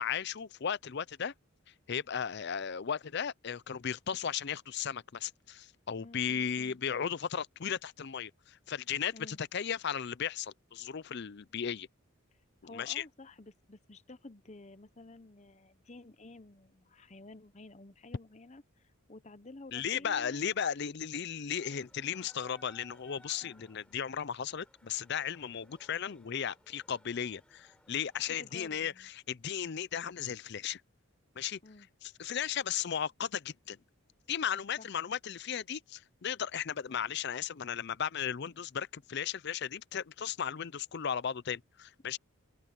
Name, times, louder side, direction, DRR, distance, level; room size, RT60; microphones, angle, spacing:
voice 1, 0.0-1.3 1.9-11.9 12.7-13.0 19.7-30.8 31.4-31.6 32.0-33.8 34.3-42.2, left 8 dB, 50° left, 0.5 m, -36 dB
voice 2, 6.0-6.8 9.1-9.4 12.6-20.6 23.4-23.7 28.3-29.1 31.6-31.9 34.8-34.9, left 2 dB, 30° left, 0.9 m, -52 dB
sound 1, 21.5-28.6, left 1 dB, 5° left, 6.9 m, -62 dB
open air
head